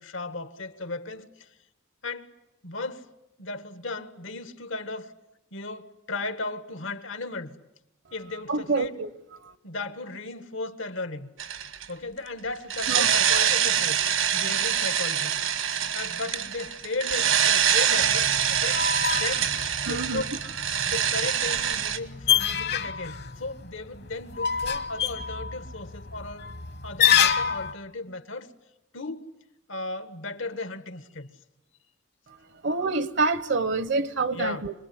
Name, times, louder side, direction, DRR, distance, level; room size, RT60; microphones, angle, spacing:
voice 1, 0.0-1.5 2.0-2.3 2.6-3.1 3.4-5.1 5.5-7.5 8.1-9.0 9.6-11.3 11.9-14.0 14.3-15.7 15.9-19.5 19.9-20.4 20.9-26.5 26.8-28.5 28.9-29.3 29.7-31.3 34.3-34.7, left 3 dB, 75° left, 1.7 m, -35 dB
voice 2, 8.5-9.1 9.4-9.6 12.9-13.1 19.8-20.2 32.3-34.7, right 3 dB, 60° right, 0.9 m, -27 dB
sound 1, 11.4-11.9 12.7-22.0, right 9 dB, 80° right, 1.5 m, -25 dB
sound 2, 18.0-27.7, left 8 dB, 55° left, 1.3 m, -28 dB
26.5 x 21.5 x 9.6 m
head